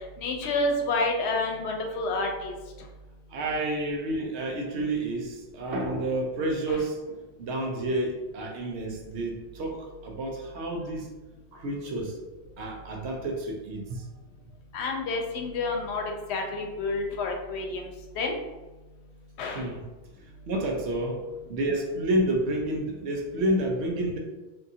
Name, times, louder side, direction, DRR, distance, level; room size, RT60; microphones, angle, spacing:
voice 1, 0.2-2.5 14.7-16.0 16.3-17.9 18.2-18.3 19.4-19.6, left 2 dB, 85° left, 2 dB, 0.8 m, -29 dB
voice 2, 3.3-11.1 11.5-12.2 12.6-14.0 19.5-19.8 20.5-21.2 21.5-24.2, right 1 dB, 85° right, 1 dB, 0.9 m, -30 dB
2.8 x 2.4 x 2.6 m, 1.1 s
omnidirectional pair, 1.1 m